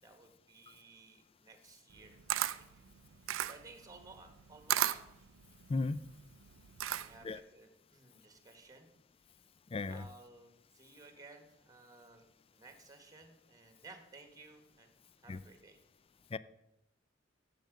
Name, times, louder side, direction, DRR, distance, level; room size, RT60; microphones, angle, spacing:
voice 1, 0.0-2.8 3.2-5.0 6.8-8.9 9.9-15.0 15.2-15.8, right 3 dB, 20° right, 6 dB, 1.4 m, -57 dB
Camera, 1.9-7.4, right 12 dB, 80° right, 0.4 m, -36 dB
voice 2, 9.7-10.0 15.3-15.4 16.3-16.4, left 3 dB, 30° left, 17 dB, 0.4 m, -35 dB
10.5 x 7.5 x 5.1 m, 0.84 s
head